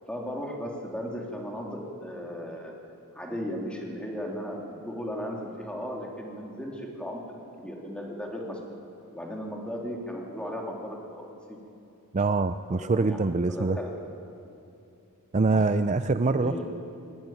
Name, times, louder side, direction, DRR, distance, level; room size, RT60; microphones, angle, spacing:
voice 1, 0.1-2.7 3.1-7.2 7.6-8.6 9.1-11.6 12.7-13.2 13.5-13.9 15.5-15.8 16.2-16.6, equal, 5° left, -1 dB, 3.3 m, -36 dB
voice 2, 12.1-13.8 15.3-16.6, right 3 dB, 30° right, 10 dB, 0.5 m, -24 dB
21.0 x 20.5 x 9.2 m, 2.7 s
head